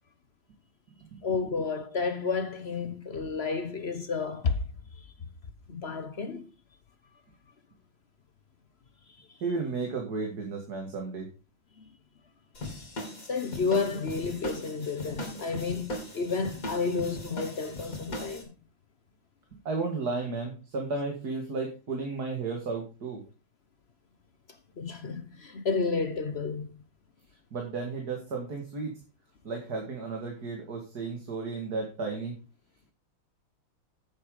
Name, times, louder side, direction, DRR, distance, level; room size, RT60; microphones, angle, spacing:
voice 1, 1.2-4.6 5.0-5.1 5.7-6.5 9.2-9.3 11.8-11.9 13.3-18.5 24.8-26.7, left 4 dB, 60° left, 0.6 m, -31 dB
voice 2, 9.4-11.3 19.5-23.2 27.5-29.0 29.4-32.3, right 4 dB, 50° right, 2.5 m, -33 dB
sound 1, 12.5-18.4, left 1 dB, 40° left, 3.3 m, -39 dB
10.0 x 7.9 x 5.0 m
omnidirectional pair, 2.3 m